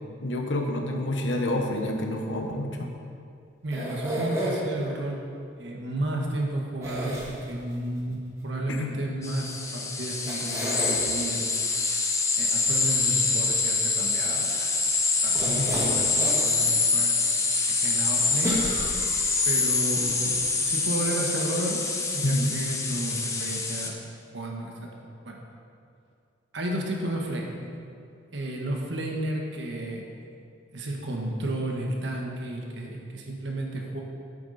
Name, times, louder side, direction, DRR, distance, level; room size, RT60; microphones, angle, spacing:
voice 1, 0.2-2.9 8.7-9.0 15.5-15.7 22.2-22.5 22.9-23.0, left 1 dB, 80° left, 2 dB, 1.1 m, -28 dB
voice 2, 3.6-5.2 5.5-11.5 12.4-14.8 15.2-18.6 19.4-20.3 20.6-21.8 22.1-23.9 24.3-24.9 25.2-25.4 26.5-27.8 28.3-30.0 30.7-34.0, right 1 dB, 75° right, 0 dB, 1.5 m, -32 dB
sound 1, 3.7-4.8 6.8-7.7 9.7-9.8 10.3-11.0 15.3-16.5 16.9-17.0 18.4-19.4 20.0-20.1 20.3-20.4, right 1 dB, 15° right, 1.8 m, -32 dB
sound 2, 9.2-23.9, left 4 dB, 15° left, 0.8 m, -25 dB
10.5 x 8.5 x 4.2 m, 2.4 s
head